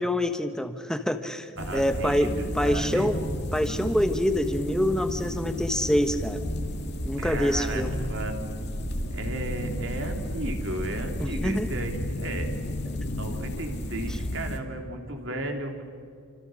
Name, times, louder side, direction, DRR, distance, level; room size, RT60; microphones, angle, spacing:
voice 1, 0.0-3.2 3.5-6.4 7.0-8.0 11.2-11.7, equal, 5° left, 7 dB, 1.3 m, -26 dB
sound 1, 1.6-14.6, left 1 dB, 50° left, 2.3 m, -32 dB
voice 2, 1.6-3.1 7.2-8.5 9.1-12.5 13.1-15.8, right 1 dB, 60° right, 3 dB, 3.4 m, -34 dB
29.5 x 26.5 x 6.6 m, 2.4 s
head